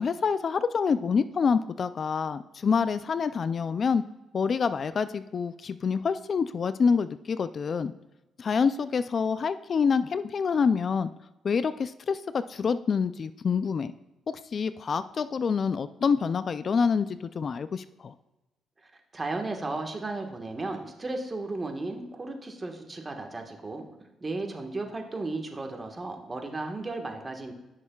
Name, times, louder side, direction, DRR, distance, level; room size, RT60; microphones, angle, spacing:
voice 1, 0.0-4.0 4.3-7.9 8.4-11.1 11.4-13.9 14.3-18.1, left 5 dB, 45° left, 13 dB, 0.3 m, -27 dB
voice 2, 18.8-23.9 24.2-27.5, right 2 dB, 25° right, 4 dB, 1.4 m, -35 dB
15.5 x 6.4 x 2.3 m, 1.0 s
cardioid pair, 90°, 0 cm